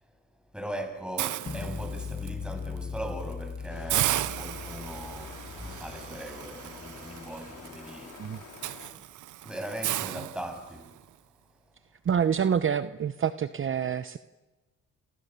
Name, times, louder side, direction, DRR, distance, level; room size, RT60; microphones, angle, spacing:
voice 1, 0.5-8.2 8.9-9.0 9.4-10.9, right 1 dB, 5° right, 7.7 m, -39 dB
Hiss, 1.2-2.3 2.8-3.0 3.3-3.4 3.9-11.0, right 14 dB, 80° right, 0.9 m, -35 dB
sound 1, 1.5-7.5, left 5 dB, 30° left, 5.1 m, -39 dB
sound 2, 3.7-8.9, left 7 dB, 80° left, 4.3 m, -48 dB
voice 2, 12.0-14.2, right 7 dB, 40° right, 1.0 m, -27 dB
29.0 x 28.5 x 7.0 m
cardioid pair, 90°, 30 cm